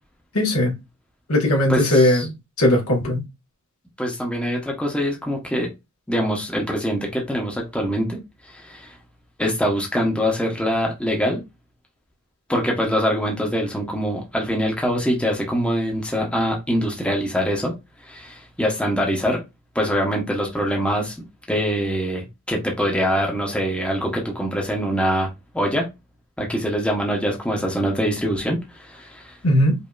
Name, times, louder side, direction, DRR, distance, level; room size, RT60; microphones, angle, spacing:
voice 1, 0.3-0.7 1.3-2.2 2.6-3.2 29.4-29.7, left 1 dB, 85° left, 1.6 m, -18 dB
voice 2, 1.7-2.3 4.0-5.7 6.1-8.2 8.5-8.9 9.4-11.4 12.5-17.7 18.0-19.4 19.7-21.1 21.5-25.3 25.5-25.9 26.4-29.4, equal, 5° left, 0.9 m, -24 dB
5.2 x 2.7 x 2.4 m
head